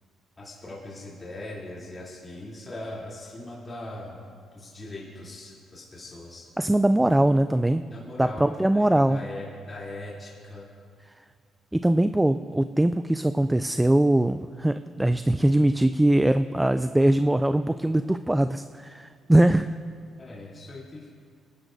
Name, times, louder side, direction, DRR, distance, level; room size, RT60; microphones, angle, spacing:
voice 1, 0.4-4.2 4.5-6.5 7.9-10.6 20.2-21.1, left 1 dB, 30° left, -6 dB, 3.1 m, -40 dB
voice 2, 6.6-7.8 8.2-9.2 11.7-19.7, right 1 dB, 10° right, 10 dB, 0.3 m, -21 dB
25.0 x 11.0 x 2.7 m, 2.2 s
cardioid pair, 90°, 0 cm